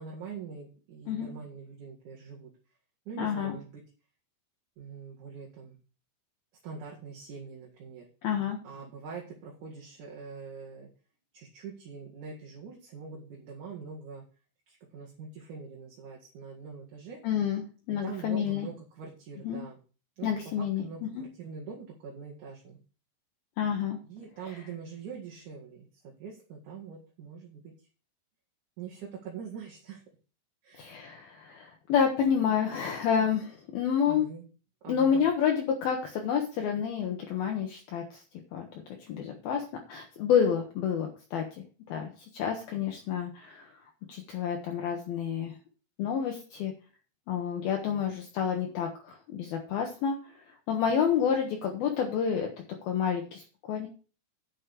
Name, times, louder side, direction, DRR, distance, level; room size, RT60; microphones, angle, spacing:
voice 1, 0.0-2.5 3.1-3.8 4.8-5.8 6.6-8.1 8.6-10.9 11.3-14.2 14.7-17.2 18.0-19.8 20.2-20.5 20.8-22.8 24.0-25.9 26.2-27.7 28.8-30.0 30.6-30.9 34.1-34.4 34.8-35.2, right 6 dB, 55° right, -2 dB, 2.9 m, -43 dB
voice 2, 3.2-3.6 8.2-8.6 17.2-17.6 17.9-18.7 19.4-19.6 20.2-20.8 21.2-21.3 23.6-24.0 30.8-34.3 34.9-38.2 38.5-38.6 39.1-41.4 41.9-43.7 44.1-45.5 46.0-46.7 47.3-50.2 50.7-52.5 52.8-53.9, left 7 dB, 65° left, 2 dB, 2.9 m, -29 dB
9.8 x 6.5 x 6.6 m, 0.37 s
omnidirectional pair, 5.1 m